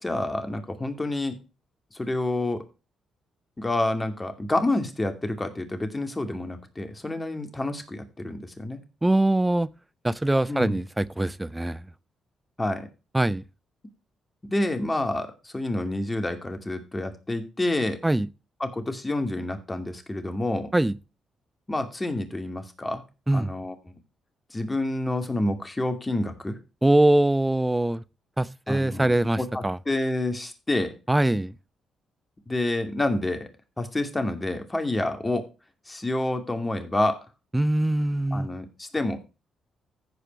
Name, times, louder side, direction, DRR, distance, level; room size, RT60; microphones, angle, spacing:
voice 1, 0.0-1.4 1.9-2.6 3.6-8.8 10.5-10.8 12.6-12.9 14.4-18.0 18.6-20.7 21.7-23.0 23.3-23.7 24.5-26.6 28.7-30.9 32.5-33.5 33.8-35.4 35.9-37.2 38.3-39.2, left 2 dB, 20° left, 2.5 m, -28 dB
voice 2, 9.0-9.7 10.0-11.8 13.1-13.4 18.0-18.3 20.7-20.9 23.3-23.5 26.8-28.0 28.4-29.8 31.1-31.5 37.5-38.5, right 1 dB, 15° right, 0.7 m, -22 dB
15.0 x 5.1 x 4.5 m
hypercardioid pair, 50°, 0 cm